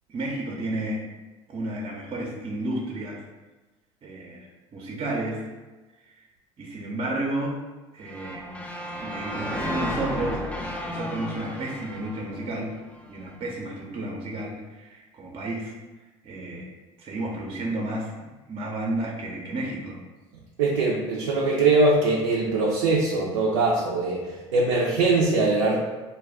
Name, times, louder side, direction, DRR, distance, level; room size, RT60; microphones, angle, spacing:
voice 1, 0.1-1.0 1.5-3.2 4.0-5.4 6.1-6.2 6.6-7.6 7.9-8.5 9.0-12.8 13.1-15.7 16.2-16.7 17.0-20.0, right 1 dB, 40° right, -1 dB, 0.6 m, -32 dB
sound 1, 8.1-13.1, left 1 dB, 10° left, 0.4 m, -33 dB
voice 2, 20.6-25.8, right 3 dB, 85° right, -3 dB, 0.4 m, -22 dB
2.3 x 2.2 x 3.4 m, 1.2 s
hypercardioid pair, 65°, 15 cm